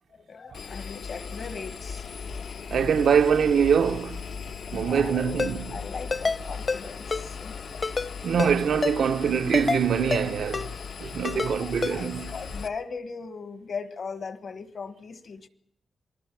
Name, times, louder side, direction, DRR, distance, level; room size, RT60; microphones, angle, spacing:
voice 1, 0.1-2.0 4.7-5.4 5.7-7.6 11.3-15.5, left 5 dB, 60° left, 1.4 m, -38 dB
Engine, 0.5-12.7, left 5 dB, 85° left, 1.1 m, -38 dB
voice 2, 2.7-4.2 4.7-5.8 8.2-10.7 11.0-12.3, right 7 dB, 85° right, 0.8 m, -24 dB
Ringtone, 5.4-5.5 6.1-6.4 6.7-6.8 7.1-7.2 7.8-8.1 8.4-8.5 8.8-9.0 9.5-9.8 10.1-10.2 10.5-10.7 11.2-11.5 11.8-11.9, left 4 dB, 40° left, 0.8 m, -27 dB
27.5 x 21.0 x 6.1 m
wide cardioid pair, 135°, 0 cm